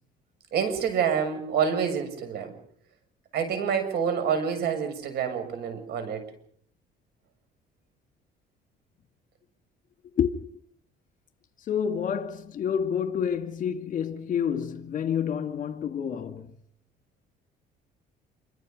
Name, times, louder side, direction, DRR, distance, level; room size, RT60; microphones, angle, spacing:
voice 1, 0.5-2.5 3.3-6.2, right 7 dB, 70° right, 7.0 m, -27 dB
voice 2, 10.2-10.5 11.7-16.5, left 8 dB, 50° left, 2.2 m, -28 dB
27.5 x 25.5 x 5.4 m
cardioid pair, 110°, 17 cm